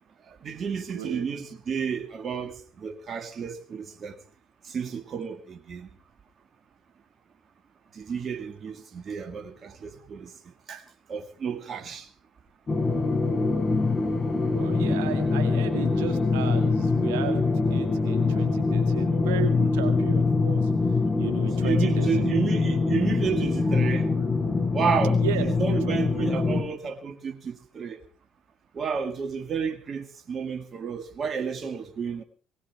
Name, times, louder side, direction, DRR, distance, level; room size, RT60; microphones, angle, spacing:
voice 1, 0.3-4.1 4.6-5.9 7.9-10.3 10.7-10.8 11.1-12.1 21.6-24.1 24.7-28.0 28.7-32.2, right 6 dB, 50° right, 1.9 m, -31 dB
voice 2, 0.9-1.3 14.5-22.4 25.2-25.5 25.9-26.7, right 11 dB, 85° right, 2.2 m, -35 dB
sound 1, 12.7-26.6, left 4 dB, 35° left, 4.4 m, -24 dB
20.0 x 18.5 x 3.5 m
hypercardioid pair, 60°, 0 cm